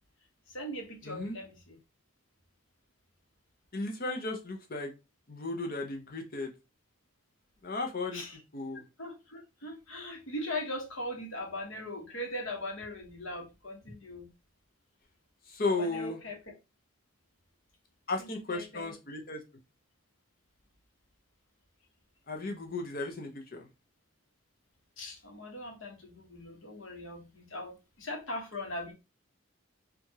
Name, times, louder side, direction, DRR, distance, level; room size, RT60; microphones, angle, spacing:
voice 1, 0.5-1.8 8.1-8.4 9.0-14.3 15.8-16.4 18.2-18.9 25.0-28.9, left 1 dB, 65° left, 1.3 m, -40 dB
voice 2, 1.0-1.3 3.7-4.9 5.3-6.5 7.6-8.2 8.5-8.8 15.5-16.2 18.1-19.4 22.3-23.7, left 2 dB, 45° left, 0.8 m, -35 dB
4.6 x 2.6 x 2.9 m
head